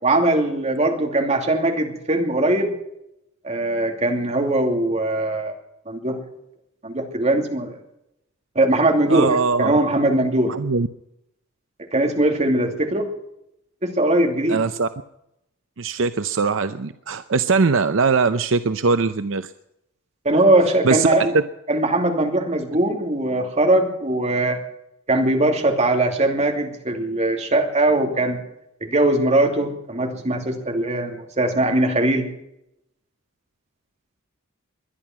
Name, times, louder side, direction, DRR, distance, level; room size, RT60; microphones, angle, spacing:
voice 1, 0.0-2.7 3.4-5.5 5.9-6.2 6.8-7.8 8.5-10.5 11.9-13.1 13.8-14.6 20.2-21.3 21.7-24.6 25.1-28.4 28.8-32.3, right 1 dB, 35° right, 3 dB, 2.7 m, -20 dB
voice 2, 9.1-9.7 10.5-10.9 14.5-14.9 15.8-19.5 20.8-21.1 21.3-21.4, right 4 dB, 65° right, 11 dB, 0.6 m, -21 dB
21.5 x 11.0 x 6.0 m, 0.82 s
head